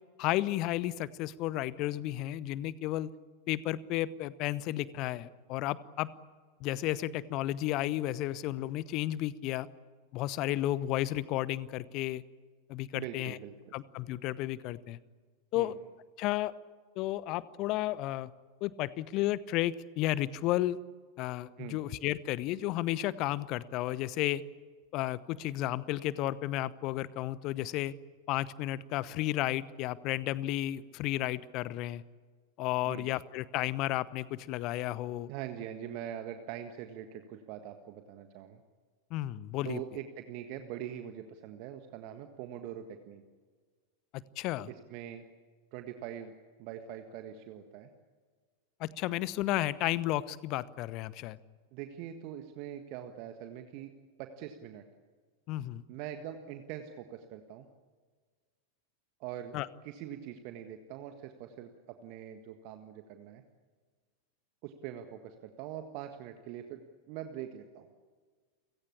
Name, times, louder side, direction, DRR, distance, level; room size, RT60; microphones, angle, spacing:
voice 1, 0.2-3.1 3.5-6.1 6.6-9.7 10.1-12.2 12.7-13.4 13.7-15.0 15.5-15.7 16.2-16.5 17.0-18.3 18.6-20.8 21.2-24.4 24.9-27.9 28.3-32.0 32.6-35.3 39.1-39.8 44.1-44.7 48.8-51.4 55.5-55.8 59.5-59.7, left 15 dB, 40° left, 19 dB, 1.0 m, -33 dB
voice 2, 12.9-13.5 15.5-15.7 21.6-21.8 32.8-33.1 35.3-38.6 39.6-43.2 44.7-45.2 45.7-46.3 46.6-47.9 51.7-53.9 54.2-54.8 55.9-57.7 59.2-59.6 59.8-63.4 64.6-66.8 67.1-67.9, right 10 dB, 45° right, 7 dB, 1.6 m, -43 dB
29.5 x 17.5 x 8.6 m, 1.6 s
figure-of-eight pair, 90°, 0 cm